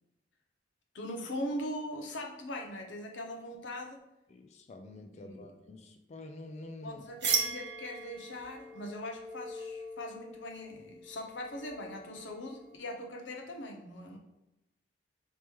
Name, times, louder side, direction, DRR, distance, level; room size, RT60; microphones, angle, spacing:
voice 1, 0.9-4.0 5.2-5.4 6.8-14.2, left 1 dB, 70° left, 2 dB, 0.6 m, -41 dB
voice 2, 4.3-7.0, left 2 dB, 35° left, 5 dB, 0.3 m, -47 dB
sound 1, 7.2-12.8, right 5 dB, 65° right, 0.5 m, -38 dB
3.0 x 3.0 x 3.4 m, 0.92 s
head